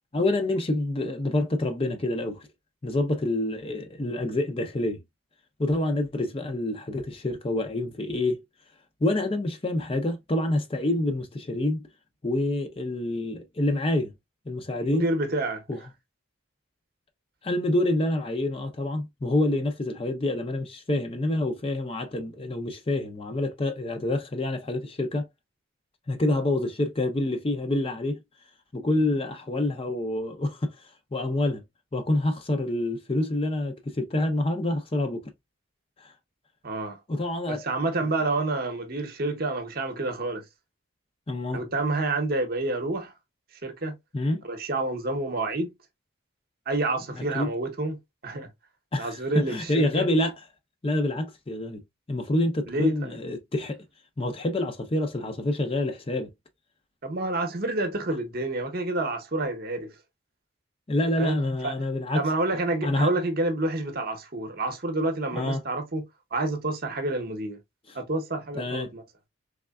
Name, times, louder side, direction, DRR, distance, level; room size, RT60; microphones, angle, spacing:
voice 1, 0.1-2.5 2.8-5.0 5.6-8.4 9.0-11.9 12.2-14.1 14.5-15.1 15.7-15.8 17.4-25.3 26.1-28.2 28.7-30.7 31.1-31.6 31.9-35.2 36.0-36.1 37.1-37.6 41.3-41.6 44.1-44.4 47.2-47.5 48.9-50.4 50.8-51.8 52.1-53.8 54.2-56.3 60.9-62.3 62.8-63.1 65.3-65.6 68.5-68.9, left 1 dB, 25° left, 0.5 m, -27 dB
voice 2, 14.8-15.6 36.6-37.0 37.5-40.4 41.5-43.1 43.6-44.0 44.4-45.7 46.7-48.0 48.2-48.5 49.0-50.1 52.7-53.1 57.0-59.9 61.2-61.4 61.6-61.8 62.1-66.1 66.3-67.6 67.9-69.0, right 2 dB, 45° right, 0.8 m, -28 dB
3.6 x 3.2 x 2.2 m
head